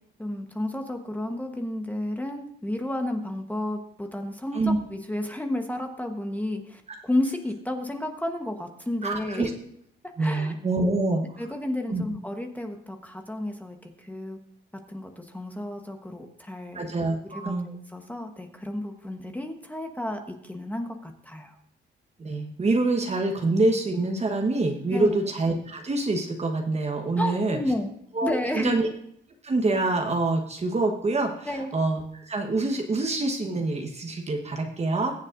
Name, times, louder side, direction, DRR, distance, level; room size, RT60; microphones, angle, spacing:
voice 1, 0.2-9.5 10.2-10.5 11.4-14.4 14.9-16.9 17.3-21.5 24.9-25.2 27.2-27.9 28.2-28.8 31.4-31.7, left 1 dB, 10° left, 4 dB, 1.1 m, -32 dB
voice 2, 9.0-9.5 10.2-11.4 11.9-12.0 16.7-17.7 22.2-27.6 28.1-28.9 29.4-35.1, right 2 dB, 35° right, 3 dB, 1.2 m, -26 dB
21.0 x 7.4 x 2.6 m, 0.69 s
cardioid pair, 90°, 20 cm